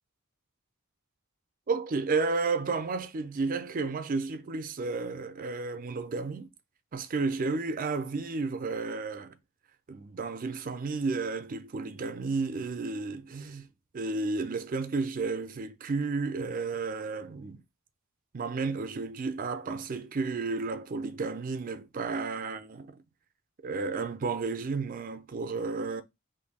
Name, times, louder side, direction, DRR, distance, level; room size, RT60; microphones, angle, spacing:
voice 1, 1.7-6.5 6.9-9.3 9.9-13.7 13.9-17.6 18.3-23.0 23.6-26.0, right 4 dB, 40° right, 0.4 m, -32 dB
2.7 x 2.6 x 4.0 m
head